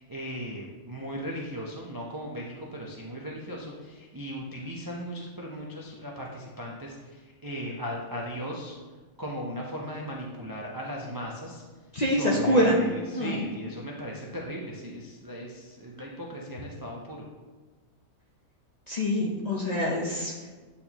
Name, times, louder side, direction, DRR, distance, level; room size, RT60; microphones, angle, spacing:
voice 1, 0.0-8.7 9.2-11.6 12.1-17.2, equal, 35° right, -3 dB, 0.3 m, -37 dB
voice 2, 11.9-12.9 13.2-13.5 18.9-20.5, left 1 dB, 45° left, -3 dB, 0.6 m, -25 dB
8.6 x 4.1 x 2.9 m, 1.3 s
omnidirectional pair, 1.5 m